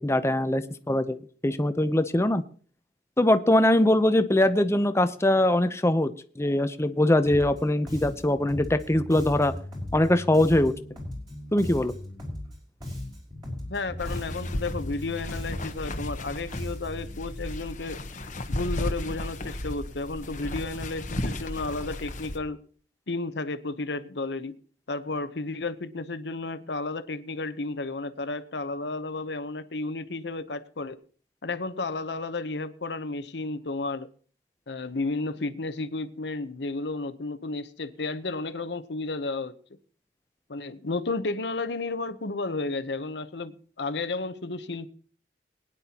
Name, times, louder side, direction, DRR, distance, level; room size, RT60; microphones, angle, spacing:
voice 1, 0.0-2.4 3.2-9.5 9.9-10.7 11.5-11.9, left 1 dB, 15° left, 0.7 m, -22 dB
Bass guitar, 7.2-7.6 7.9-12.5 12.8-17.1, left 1 dB, 25° right, 5.2 m, -37 dB
voice 2, 13.7-18.0 18.5-22.6 23.1-24.6 24.9-31.0 31.4-34.1 34.7-39.5 40.5-44.9, left 3 dB, 70° left, 0.9 m, -32 dB
sound 1, 14.0-22.4, left 1 dB, 45° left, 1.1 m, -34 dB
21.0 x 10.0 x 2.9 m
head